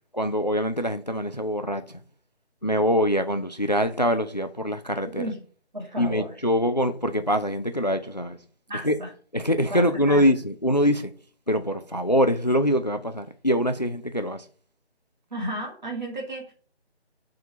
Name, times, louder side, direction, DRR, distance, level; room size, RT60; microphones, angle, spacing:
voice 1, 0.1-1.8 2.6-5.2 6.0-8.4 8.8-9.0 9.3-11.1 11.5-14.4, equal, 40° left, 0.4 m, -24 dB
voice 2, 5.7-6.3 8.7-9.1 9.7-10.3 15.3-16.5, right 1 dB, 45° right, 1.9 m, -33 dB
5.7 x 3.8 x 5.3 m
figure-of-eight pair, 160°, 33 cm